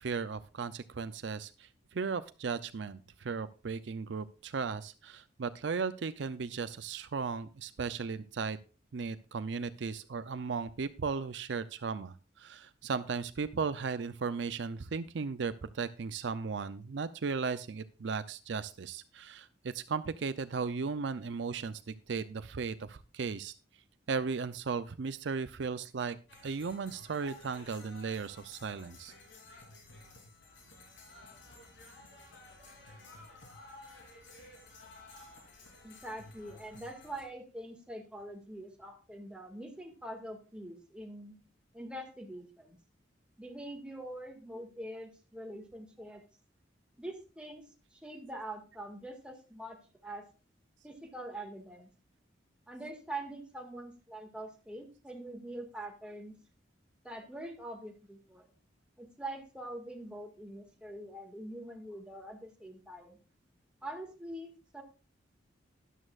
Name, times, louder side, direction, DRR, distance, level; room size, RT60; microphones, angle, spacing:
voice 1, 0.0-8.6 8.9-23.5 24.1-26.2 26.4-29.1, right 5 dB, 65° right, 13 dB, 0.5 m, -36 dB
sound 1, 26.3-37.2, left 2 dB, 80° left, 3.3 m, -54 dB
voice 2, 35.8-41.3 41.7-42.8 43.4-46.2 47.0-47.6 47.9-49.8 50.0-50.2 50.8-51.9 52.7-56.3 57.0-58.5 59.0-63.2 63.8-64.8, right 1 dB, 5° right, 1 dB, 1.9 m, -44 dB
12.5 x 11.0 x 2.4 m, 0.33 s
head